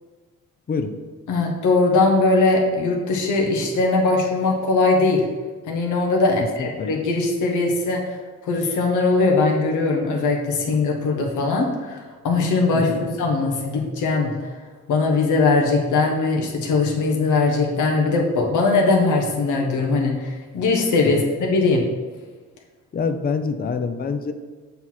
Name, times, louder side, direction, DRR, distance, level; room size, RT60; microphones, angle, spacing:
voice 1, 1.3-5.3 5.7-8.2 8.4-14.3 14.9-21.9, left 3 dB, 80° left, 0 dB, 1.2 m, -20 dB
voice 2, 6.4-6.9 12.7-13.1 21.0-21.2 22.9-24.3, left 5 dB, 30° left, 8 dB, 0.6 m, -26 dB
6.8 x 4.2 x 4.5 m, 1.3 s
cardioid pair, 90°, 30 cm